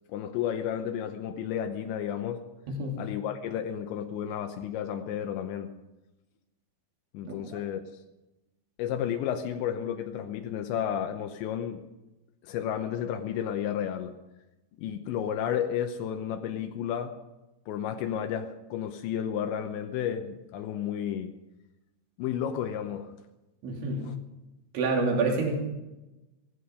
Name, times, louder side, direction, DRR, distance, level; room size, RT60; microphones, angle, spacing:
voice 1, 0.1-2.4 3.0-5.7 7.1-7.8 8.8-11.8 12.4-14.2 14.8-17.2 17.7-21.3 22.2-23.1 24.0-24.2, left 9 dB, 80° left, 6 dB, 3.2 m, -32 dB
voice 2, 2.7-3.0 7.3-7.4 23.6-24.1 24.7-25.5, right 3 dB, 80° right, 0 dB, 5.3 m, -27 dB
16.5 x 16.0 x 5.2 m, 1.0 s
omnidirectional pair, 5.2 m